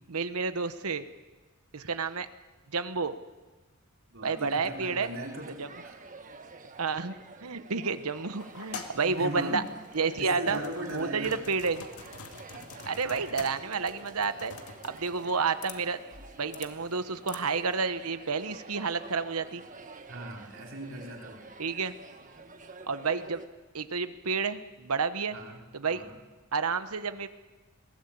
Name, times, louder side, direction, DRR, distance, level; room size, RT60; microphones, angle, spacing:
voice 1, 0.1-1.0 1.7-2.3 2.7-3.2 4.2-5.1 5.6-5.7 6.8-7.1 7.4-9.6 9.9-10.6 10.9-11.8 12.9-14.5 14.8-16.0 16.4-19.6 21.6-21.9 22.9-23.4 23.7-25.4 25.7-26.0 26.5-27.3, right 4 dB, 80° right, 11 dB, 1.1 m, -30 dB
voice 2, 4.1-6.0 8.6-9.6 10.1-11.4 13.0-13.4 20.1-21.4 25.3-25.6 25.9-26.1, right 1 dB, 60° right, 0 dB, 4.3 m, -39 dB
sound 1, 4.4-23.4, right 3 dB, 35° right, 1.6 m, -49 dB
sound 2, 8.4-17.8, left 4 dB, 85° left, 2.1 m, -47 dB
21.5 x 18.0 x 8.6 m, 1.2 s
head